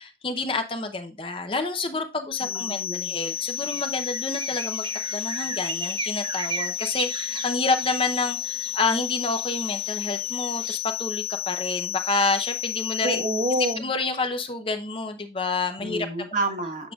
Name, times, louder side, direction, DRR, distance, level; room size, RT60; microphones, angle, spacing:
voice 1, 0.0-4.9 5.1-13.2 13.8-16.1, left 3 dB, 30° left, 6 dB, 0.7 m, -28 dB
sound 1, 2.3-13.7, left 11 dB, 60° left, 0.7 m, -31 dB
voice 2, 2.4-3.1 13.0-13.9 15.8-16.9, right 2 dB, 45° right, 3 dB, 1.4 m, -28 dB
sound 2, 3.2-10.8, right 6 dB, 30° right, 0.6 m, -38 dB
8.2 x 6.6 x 2.4 m, 0.28 s
head